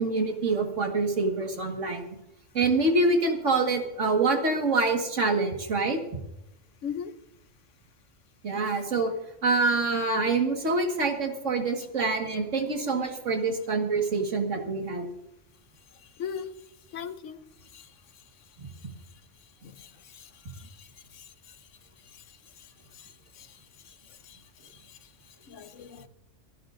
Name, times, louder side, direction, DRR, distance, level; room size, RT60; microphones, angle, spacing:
voice 1, 0.0-2.0 2.5-6.0 8.4-9.1 9.4-15.1 18.6-18.7, right 3 dB, 80° right, 2.2 m, -26 dB
voice 2, 6.8-7.1 16.2-16.5 16.9-17.4 17.7-17.8 19.8-19.9 25.5-26.1, left 7 dB, 80° left, 1.2 m, -36 dB
28.0 x 10.0 x 2.6 m
omnidirectional pair, 1.3 m